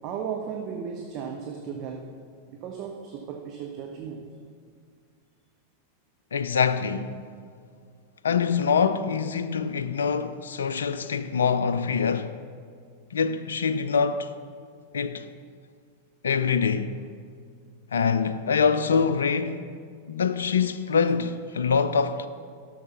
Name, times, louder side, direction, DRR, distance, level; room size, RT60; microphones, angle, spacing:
voice 1, 0.0-2.1 2.5-4.3, right 7 dB, 40° right, 0.8 m, -35 dB
voice 2, 6.3-7.2 8.2-12.4 13.1-14.3 14.9-15.3 16.2-17.0 17.9-19.7 20.1-22.3, left 6 dB, 70° left, 0.4 m, -24 dB
11.5 x 6.5 x 5.8 m
figure-of-eight pair, 90°, 0 cm